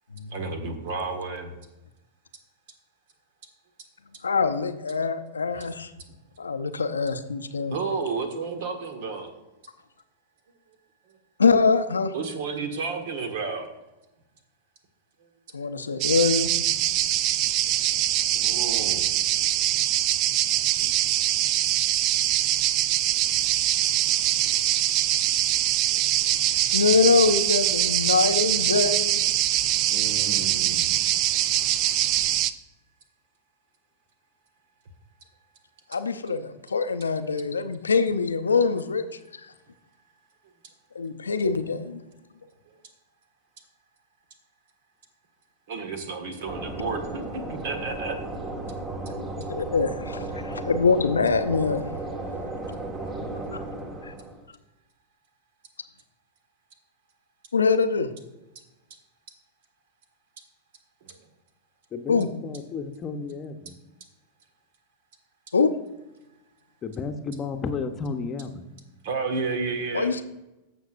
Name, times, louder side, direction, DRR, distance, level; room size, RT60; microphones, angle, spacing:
voice 1, 0.3-1.5 5.5-5.6 7.7-9.3 12.1-13.7 18.3-19.3 25.9-26.1 29.9-30.9 45.7-48.2 61.1-61.2 69.0-70.1, right 4 dB, 60° right, 7 dB, 1.4 m, -32 dB
voice 2, 4.2-5.9 6.4-7.8 11.4-12.1 15.5-16.5 26.7-29.2 35.9-39.0 40.9-42.0 49.5-51.9 54.0-54.1 57.5-58.1 62.1-62.3 65.5-65.7 69.9-70.2, left 4 dB, 85° left, 10 dB, 0.6 m, -23 dB
sound 1, 16.0-32.5, right 12 dB, 45° right, 0.4 m, -23 dB
sound 2, 46.5-54.5, right 2 dB, 25° right, 1.4 m, -34 dB
voice 3, 61.9-63.8 66.8-68.7, left 4 dB, 30° left, 7 dB, 0.9 m, -33 dB
15.0 x 6.1 x 2.6 m, 0.98 s
figure-of-eight pair, 95°, 0 cm